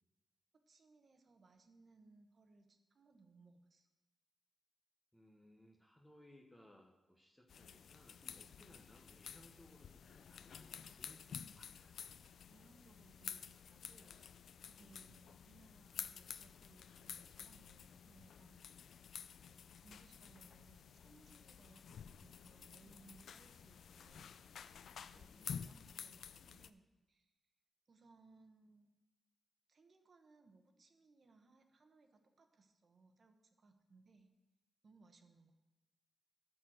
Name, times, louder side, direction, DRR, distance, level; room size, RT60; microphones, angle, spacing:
voice 1, 0.7-3.9 12.5-18.6 19.5-24.4 24.9-27.3 27.9-28.9 29.7-34.3 34.8-35.5, right 3 dB, 45° right, 6 dB, 1.1 m, -66 dB
voice 2, 5.1-12.2 14.8-15.1 25.3-25.9, left 1 dB, 10° left, 1 dB, 1.0 m, -64 dB
sound 1, 7.5-26.7, left 7 dB, 75° left, 0.4 m, -52 dB
13.0 x 4.5 x 7.6 m, 1.1 s
wide cardioid pair, 120°, 0 cm